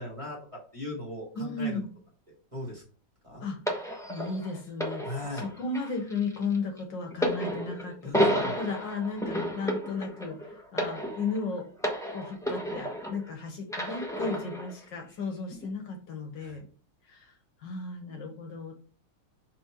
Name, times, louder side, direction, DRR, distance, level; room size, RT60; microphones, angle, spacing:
voice 1, 0.0-1.8 2.5-2.8 3.2-3.4 5.0-5.5 8.0-8.5 16.4-16.6, left 1 dB, 15° right, -2 dB, 1.6 m, -38 dB
voice 2, 1.3-1.9 3.4-3.6 4.1-5.0 5.3-8.3 8.5-11.7 12.1-16.7 17.1-17.3 17.6-18.9, left 4 dB, 65° left, 4 dB, 1.7 m, -35 dB
sound 1, 3.7-13.3 13.7-14.7 15.5-15.7, equal, ahead, 0.8 m, -32 dB
5.4 x 4.5 x 4.5 m, 0.42 s
omnidirectional pair, 2.2 m